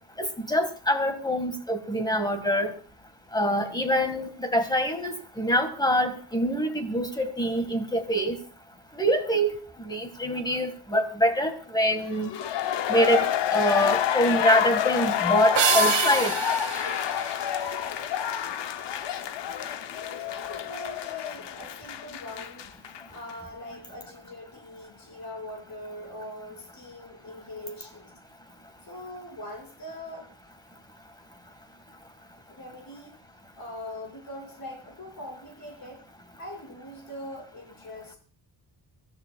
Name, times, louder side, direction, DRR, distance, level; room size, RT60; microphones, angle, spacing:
voice 1, 0.2-2.7 3.3-8.4 8.9-9.5 9.8-12.3 12.9-13.3 13.5-16.3, equal, 10° left, 7 dB, 1.7 m, -25 dB
sound 1, 12.1-23.0 23.3-23.4, left 10 dB, 65° left, 0.8 m, -28 dB
sound 2, 15.5-18.2, right 9 dB, 70° right, 1.3 m, -28 dB
voice 2, 19.5-22.7 23.1-28.1 28.8-30.3 32.5-33.1 33.5-36.0 36.3-38.2, left 1 dB, 45° left, 0 dB, 5.7 m, -42 dB
24.5 x 15.0 x 2.3 m, 0.41 s
wide cardioid pair, 175°, 46 cm